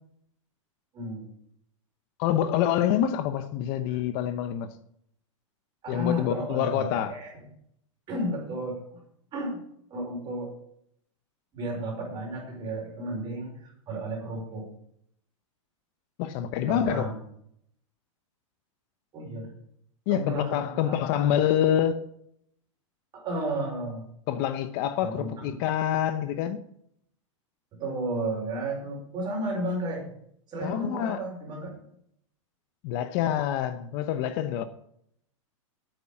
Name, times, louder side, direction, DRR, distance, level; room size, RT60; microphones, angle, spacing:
voice 1, 0.9-1.3 3.9-4.0 5.8-7.3 8.1-9.0 9.3-9.6 9.9-10.5 11.5-14.7 16.7-17.2 19.1-19.5 20.1-21.1 23.1-24.1 25.0-25.3 27.8-30.1 30.5-31.7, right 1 dB, 25° right, 5.2 m, -33 dB
voice 2, 2.2-4.7 5.9-7.2 16.2-17.1 20.1-22.0 24.3-26.6 30.6-31.2 32.8-34.6, left 10 dB, 45° left, 0.9 m, -26 dB
8.9 x 8.2 x 8.5 m
hypercardioid pair, 140°, 17 cm